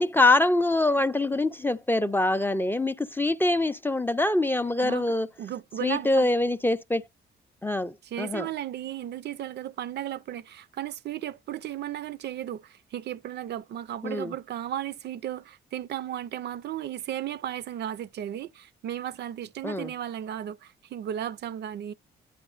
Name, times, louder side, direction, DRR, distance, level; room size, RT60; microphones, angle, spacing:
voice 1, 0.0-5.3 5.8-7.1 7.6-8.5 14.0-14.3 19.6-19.9, left 2 dB, 10° left, 0.3 m, -24 dB
voice 2, 5.4-6.3 8.1-21.9, right 11 dB, 60° right, 0.4 m, -35 dB
9.9 x 4.8 x 2.4 m
cardioid pair, 90°, 20 cm